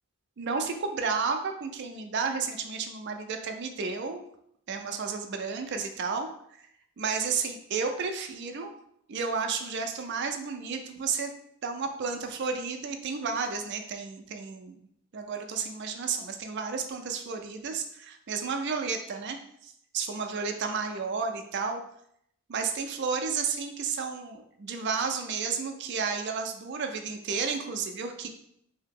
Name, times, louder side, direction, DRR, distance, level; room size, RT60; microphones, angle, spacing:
voice 1, 0.4-4.2 4.7-6.3 6.6-6.7 7.0-8.7 9.1-11.3 11.6-14.8 15.1-19.4 19.6-21.8 22.5-28.3, right 5 dB, 50° right, 5 dB, 0.4 m, -32 dB
2.8 x 2.7 x 3.6 m, 0.72 s
head